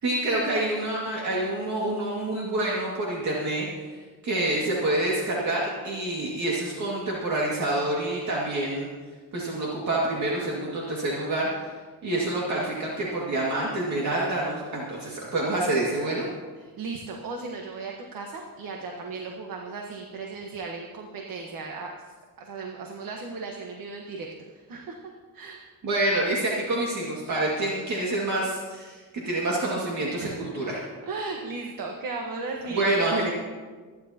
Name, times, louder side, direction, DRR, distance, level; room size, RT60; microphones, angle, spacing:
voice 1, 0.0-3.7 4.2-8.9 9.3-11.7 12.0-16.3 25.8-30.8 32.7-33.3, right 2 dB, 50° right, -4 dB, 2.2 m, -27 dB
voice 2, 16.6-21.9 22.4-24.3 24.5-25.0 25.3-25.6 30.1-30.4 31.1-33.3, right 4 dB, 70° right, 1 dB, 1.4 m, -36 dB
25.0 x 10.5 x 2.9 m, 1.4 s
cardioid pair, 145°, 35 cm